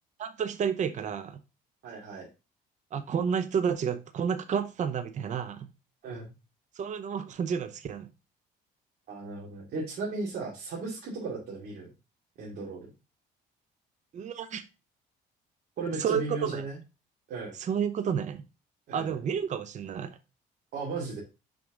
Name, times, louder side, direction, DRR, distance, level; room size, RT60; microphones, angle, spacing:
voice 1, 0.2-1.4 2.9-5.7 6.8-8.1 14.1-14.6 16.0-16.6 17.5-18.4 18.9-20.2, right 7 dB, 45° right, 0.8 m, -30 dB
voice 2, 1.8-2.3 6.0-6.3 9.1-11.9 12.4-12.9 15.8-16.8 17.3-17.6 18.9-19.2 20.7-21.2, right 3 dB, 65° right, 2.6 m, -36 dB
6.1 x 5.2 x 3.8 m
cardioid pair, 110°, 17 cm